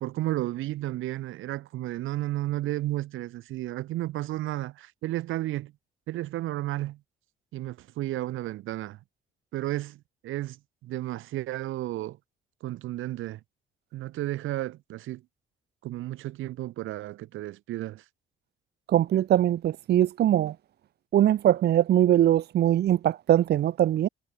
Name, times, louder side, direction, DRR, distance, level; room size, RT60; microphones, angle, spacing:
voice 1, 0.0-5.7 6.1-7.0 7.5-9.0 9.5-10.6 10.8-12.2 12.6-13.4 13.9-15.2 15.8-18.0, right 15 dB, 85° right, 1.2 m, -32 dB
voice 2, 18.9-20.5 21.1-24.1, right 12 dB, 55° right, 0.5 m, -22 dB
cardioid pair, 90°, 20 cm